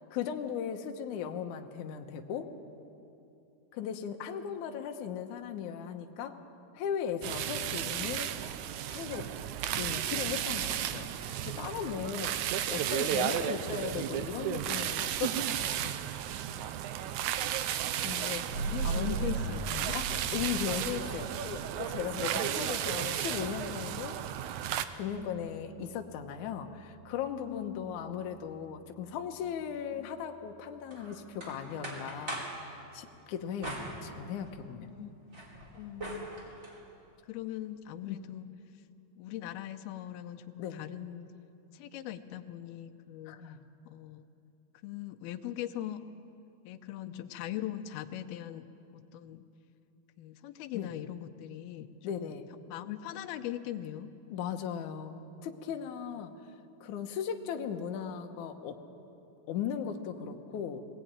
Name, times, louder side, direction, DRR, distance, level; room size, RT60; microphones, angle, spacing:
voice 1, 0.0-2.5 3.7-6.4 6.7-8.3 8.9-9.3 9.8-12.3 12.7-16.0 18.0-19.3 19.9-24.2 24.9-34.9 38.0-38.2 40.6-40.8 43.3-43.6 47.1-47.2 50.7-50.9 52.0-52.5 54.3-56.4 56.8-58.8 59.5-60.9, left 8 dB, 65° left, 4 dB, 2.2 m, -37 dB
sound 1, 7.2-24.8, right 11 dB, 85° right, 1.7 m, -34 dB
sound 2, 18.5-29.7, right 4 dB, 45° right, 3.1 m, -41 dB
voice 2, 18.7-20.0 20.4-20.6 22.6-22.8 25.1-25.5 27.4-27.9 29.9-30.1 33.1-33.2 34.9-35.1 35.7-36.3 37.3-38.5 39.2-41.3 41.7-43.3 43.9-44.3 44.8-46.1 46.6-48.7 48.9-49.4 50.2-52.3 52.7-54.1, left 12 dB, 85° left, 9 dB, 2.7 m, -40 dB
sound 3, 30.9-32.6 33.6-34.7 35.1-36.8, right 1 dB, 20° right, 3.4 m, -42 dB
22.0 x 18.0 x 8.9 m, 2.7 s
omnidirectional pair, 4.3 m